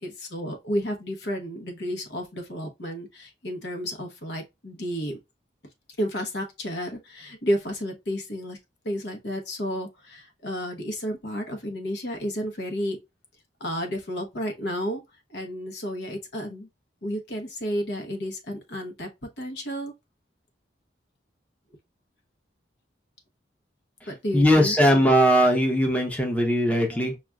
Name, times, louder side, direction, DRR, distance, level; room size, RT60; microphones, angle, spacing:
voice 1, 0.0-5.2 6.0-8.6 8.8-13.0 13.6-15.0 15.3-16.7 17.0-19.1 19.4-19.9 24.1-24.7, equal, 70° left, 1.0 m, -31 dB
voice 2, 24.0-27.2, equal, 10° left, 0.7 m, -20 dB
5.8 x 2.4 x 2.3 m
head